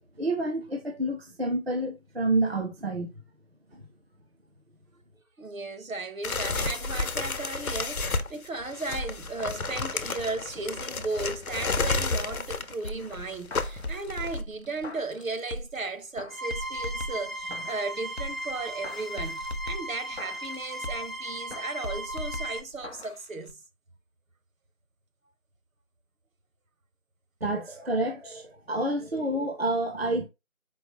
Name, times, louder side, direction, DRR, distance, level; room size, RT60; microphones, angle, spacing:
voice 1, 0.2-3.1 3.7-3.8 27.4-30.3, right 2 dB, 45° right, 0.5 m, -29 dB
voice 2, 5.4-23.6, right 3 dB, 70° right, 0.9 m, -35 dB
sound 1, 6.2-14.4, left 3 dB, 80° left, 0.8 m, -31 dB
sound 2, 12.8-15.8 16.2-17.9 18.2-21.2 21.5-23.2 23.5-23.6, left 1 dB, 50° left, 0.6 m, -39 dB
sound 3, 16.3-22.6, right 1 dB, 85° right, 1.9 m, -37 dB
4.6 x 2.9 x 2.8 m
figure-of-eight pair, 175°, 42 cm